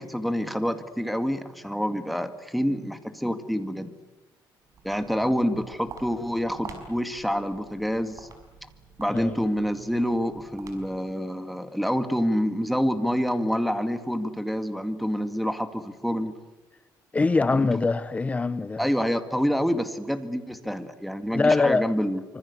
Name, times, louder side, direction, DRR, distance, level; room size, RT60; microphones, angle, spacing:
voice 1, 0.0-3.9 4.8-8.3 9.0-16.3 17.5-17.7 18.8-22.2, equal, ahead, 2.1 m, -27 dB
Walk footsteps, 4.6-11.1, right 5 dB, 45° right, 5.6 m, -47 dB
voice 2, 17.1-18.9 21.3-21.9, left 3 dB, 20° left, 1.0 m, -23 dB
25.5 x 25.5 x 8.3 m
cardioid pair, 135°, 8 cm